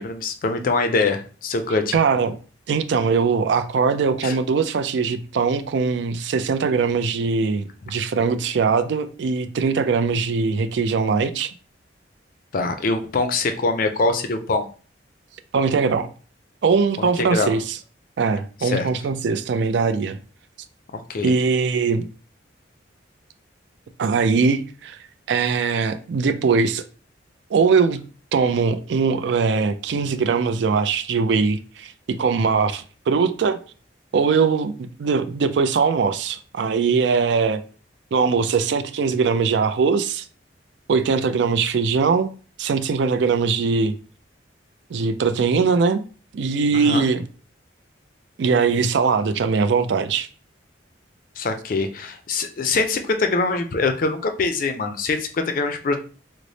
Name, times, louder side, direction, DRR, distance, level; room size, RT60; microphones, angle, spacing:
voice 1, 0.0-2.0 4.2-4.4 12.5-14.7 17.0-17.5 18.6-18.9 20.9-21.3 46.7-47.0 51.4-56.0, left 3 dB, 45° left, 0.4 m, -23 dB
voice 2, 1.9-2.4 2.7-11.5 15.5-16.1 16.6-17.8 18.2-20.2 21.2-22.1 24.0-25.0 25.3-26.8 27.5-28.0 28.3-33.6 34.1-34.7 35.0-37.6 38.1-40.2 40.9-42.3 42.6-44.0 44.9-46.0 46.3-47.2 48.4-50.3, right 5 dB, 65° right, 0.4 m, -21 dB
3.2 x 2.0 x 3.9 m
head